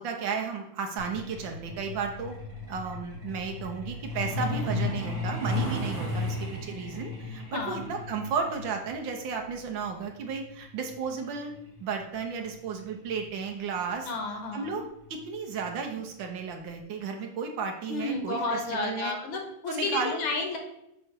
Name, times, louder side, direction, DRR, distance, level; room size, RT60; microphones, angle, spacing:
voice 1, 0.0-2.3 2.7-11.5 11.8-14.1 14.5-14.8 15.1-19.1 19.7-20.2, right 5 dB, 65° right, 3 dB, 1.7 m, -33 dB
Truck, 1.0-13.3 14.5-14.7 15.1-15.2 15.6-15.9 16.2-16.3 16.8-16.9, left 2 dB, 45° right, 1.9 m, -35 dB
voice 2, 4.5-4.9 7.5-7.9 14.1-14.8 17.9-20.6, left 3 dB, 70° left, 3 dB, 2.0 m, -32 dB
7.6 x 3.2 x 6.0 m, 0.81 s
omnidirectional pair, 2.3 m